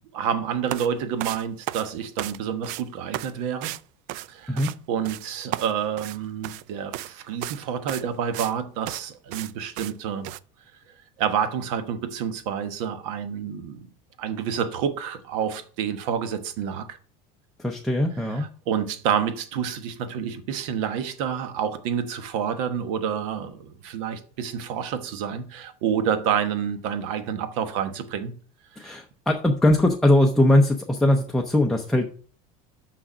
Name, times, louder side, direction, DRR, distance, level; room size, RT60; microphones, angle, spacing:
voice 1, 0.1-3.7 4.3-4.6 4.9-10.3 11.2-13.9 14.2-17.0 18.3-28.3 28.7-29.0, right 8 dB, 70° right, 1.1 m, -28 dB
sound 1, 0.7-0.9 1.2-2.4 2.6-2.8 3.1-3.3 3.6-3.8 4.1-4.8 5.0-5.3 5.5-6.6 6.9-7.1 7.4-7.6 7.9-8.5 8.9-9.0 9.3-9.5 9.8-9.9 10.2-10.4, right 15 dB, 50° right, 0.4 m, -33 dB
voice 2, 17.6-18.5 28.8-32.1, left 1 dB, ahead, 0.5 m, -20 dB
6.3 x 5.9 x 6.1 m
cardioid pair, 170°, 17 cm